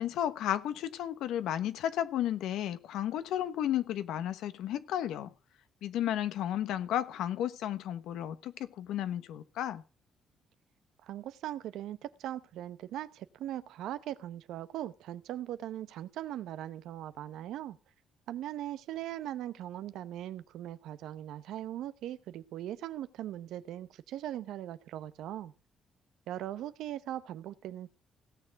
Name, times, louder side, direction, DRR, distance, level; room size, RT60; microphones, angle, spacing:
voice 1, 0.0-5.3 5.8-9.8, left 11 dB, 85° left, 1.2 m, -33 dB
voice 2, 11.0-17.8 18.3-25.5 26.3-27.9, right 12 dB, 85° right, 0.8 m, -40 dB
17.0 x 6.9 x 5.9 m
cardioid pair, 90°, 0 cm